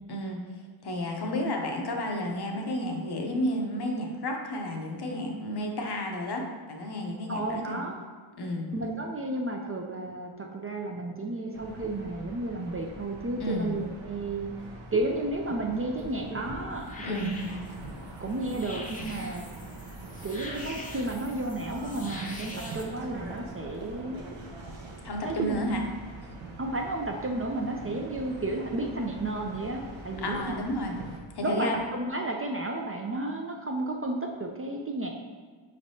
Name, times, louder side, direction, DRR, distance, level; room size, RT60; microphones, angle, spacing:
voice 1, 0.1-7.8 8.4-8.7 13.4-13.7 17.0-17.3 25.0-25.9 30.2-31.0 31.3-31.8, left 1 dB, 55° left, 1 dB, 0.7 m, -32 dB
voice 2, 7.3-8.0 8.7-14.5 14.9-17.6 18.2-19.4 20.2-24.2 25.2-25.7 26.6-30.6 31.4-35.1, right 2 dB, 30° right, 1 dB, 0.4 m, -32 dB
sound 1, 11.5-31.2, right 2 dB, 70° right, 0.7 m, -44 dB
sound 2, 16.0-22.8, left 1 dB, 15° left, 0.6 m, -44 dB
5.1 x 3.2 x 2.7 m, 1.5 s
wide cardioid pair, 70°, 48 cm